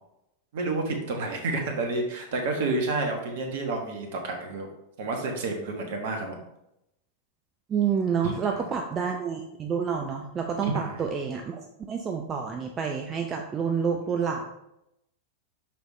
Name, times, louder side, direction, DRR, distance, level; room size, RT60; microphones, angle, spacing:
voice 1, 0.5-4.7 5.0-6.4 8.2-8.7 10.6-11.0, right 2 dB, 55° right, 3 dB, 1.3 m, -30 dB
voice 2, 7.7-11.6 11.9-14.5, right 6 dB, 25° right, 3 dB, 0.6 m, -28 dB
5.9 x 5.2 x 3.2 m, 0.83 s
figure-of-eight pair, 90°, 0 cm